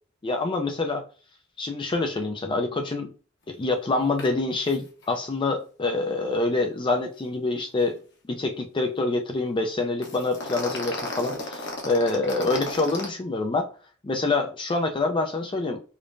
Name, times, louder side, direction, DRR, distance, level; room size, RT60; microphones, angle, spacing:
voice 1, 0.2-1.0 1.6-3.1 3.5-8.0 8.3-13.7 14.0-15.8, left 3 dB, 25° left, 4 dB, 0.4 m, -26 dB
sound 1, 4.2-4.3 4.6-4.8 5.0-5.1 10.0-13.1, left 2 dB, 60° left, 1.0 m, -33 dB
5.0 x 2.1 x 2.5 m, 0.39 s
head